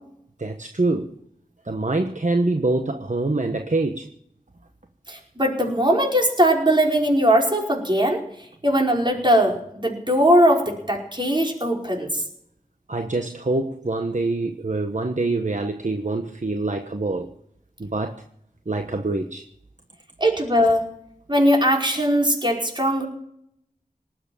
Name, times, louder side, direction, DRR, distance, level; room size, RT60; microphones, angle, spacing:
voice 1, 0.4-1.1 1.6-4.1 12.9-17.3 17.8-18.2 18.7-19.4, right 2 dB, 55° right, 1.2 m, -25 dB
voice 2, 5.1-8.2 8.6-12.2 20.2-20.9 21.3-23.0, equal, 30° right, 5.0 m, -20 dB
19.0 x 8.0 x 9.0 m
wide cardioid pair, 50°, 15 cm